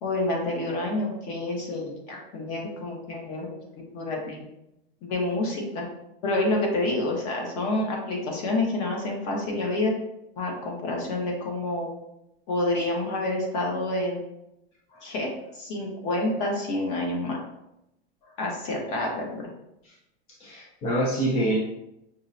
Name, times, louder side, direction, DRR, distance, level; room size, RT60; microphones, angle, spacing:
voice 1, 0.0-3.5 3.9-4.5 5.0-5.8 6.2-9.9 10.4-11.9 12.5-14.2 15.0-17.4 18.4-19.5, left 2 dB, 40° left, -1 dB, 1.0 m, -28 dB
voice 2, 20.4-21.6, right 1 dB, 20° left, -4 dB, 0.4 m, -26 dB
5.4 x 2.1 x 2.6 m, 0.84 s
supercardioid pair, 155°, 30 cm